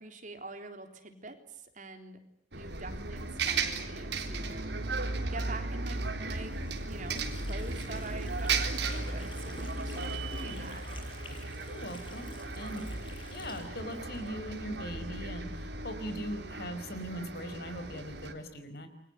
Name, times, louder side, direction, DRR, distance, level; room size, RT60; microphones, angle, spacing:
voice 1, 0.0-2.2 2.5-4.7 5.3-6.6 6.8-10.8, right 2 dB, 45° right, 6 dB, 3.6 m, -45 dB
Bus, 2.5-18.3, right 3 dB, 70° right, 3.9 m, -36 dB
Water / Sink (filling or washing), 6.3-14.8, left 3 dB, 30° left, 6.0 m, -52 dB
voice 2, 10.3-10.7 11.7-12.9 13.3-18.9, equal, 60° left, 9 dB, 5.0 m, -40 dB
29.0 x 23.0 x 8.0 m, 0.73 s
head